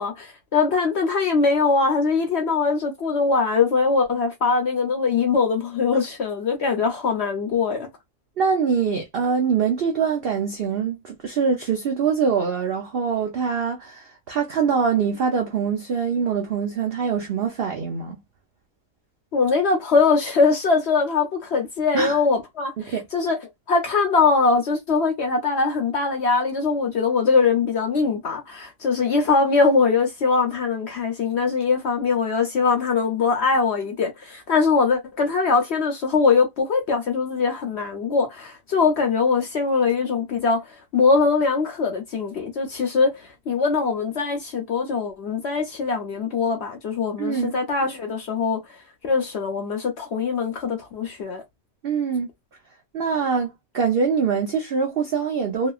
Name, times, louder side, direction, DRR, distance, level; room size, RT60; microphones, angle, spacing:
voice 1, 0.0-7.9 19.3-23.4 23.7-40.6 40.9-48.6 49.0-51.4, left 4 dB, 55° left, 0.8 m, -22 dB
voice 2, 8.4-18.2 21.9-22.2 22.8-23.1 47.2-47.6 51.8-52.3 52.9-53.5 53.7-55.7, right 6 dB, 75° right, 0.5 m, -24 dB
2.9 x 2.3 x 2.3 m
omnidirectional pair, 1.7 m